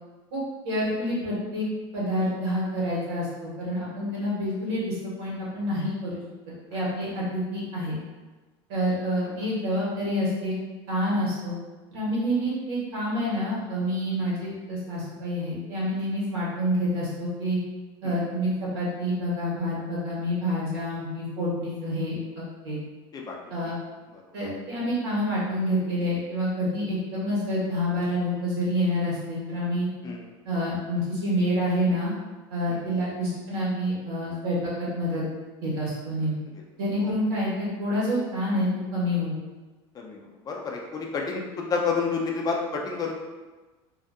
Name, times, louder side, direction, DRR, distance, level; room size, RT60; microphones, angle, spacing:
voice 1, 0.3-1.7 1.9-6.2 6.7-8.0 8.7-10.5 10.9-11.6 11.9-17.6 18.0-22.2 22.6-22.8 23.5-23.8 24.3-29.9 30.4-32.1 32.5-35.2 35.6-36.4 36.8-39.4, equal, 85° right, -7 dB, 1.3 m, -28 dB
voice 2, 32.7-33.0 37.0-37.1 39.9-40.2 40.5-43.1, left 4 dB, 30° left, 0 dB, 0.4 m, -30 dB
2.6 x 2.4 x 2.2 m, 1.2 s
supercardioid pair, 105°, 13 cm